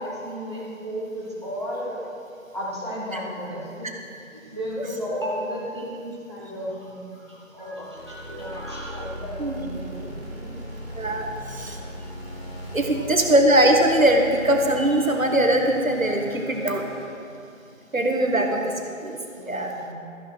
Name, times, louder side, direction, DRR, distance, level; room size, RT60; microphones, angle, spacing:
voice 1, 0.0-2.0 2.5-3.9 4.3-10.6 12.9-13.3 17.9-18.6 19.3-19.9, equal, 20° right, -7 dB, 1.4 m, -34 dB
sound 1, 8.0-17.1, left 1 dB, 45° right, 2.5 m, -38 dB
voice 2, 11.0-11.8 12.7-16.8 17.9-18.7 19.0-19.2 19.5-19.7, right 1 dB, 75° right, 2 dB, 1.7 m, -21 dB
13.5 x 6.3 x 6.2 m, 2.6 s
figure-of-eight pair, 170°, 41 cm